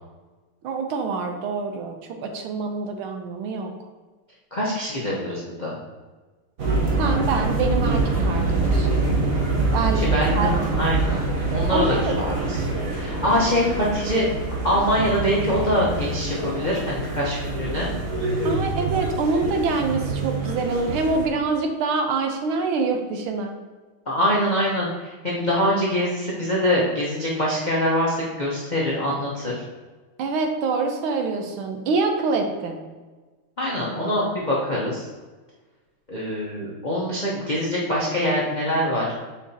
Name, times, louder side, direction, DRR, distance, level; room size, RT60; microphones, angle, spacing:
voice 1, 0.6-2.0 2.2-3.7 7.0-9.1 9.7-10.8 11.7-12.3 18.4-23.5 30.2-32.8, right 4 dB, 75° right, 4 dB, 1.5 m, -25 dB
voice 2, 4.5-5.7 9.9-10.5 10.8-11.2 11.5-12.6 13.0-14.3 14.6-17.9 24.1-29.5 33.6-35.1 36.1-39.2, equal, 55° left, -6 dB, 0.5 m, -24 dB
sound 1, 6.6-21.3, right 2 dB, 50° right, 1.2 m, -25 dB
7.1 x 4.8 x 2.8 m, 1.3 s
omnidirectional pair, 2.4 m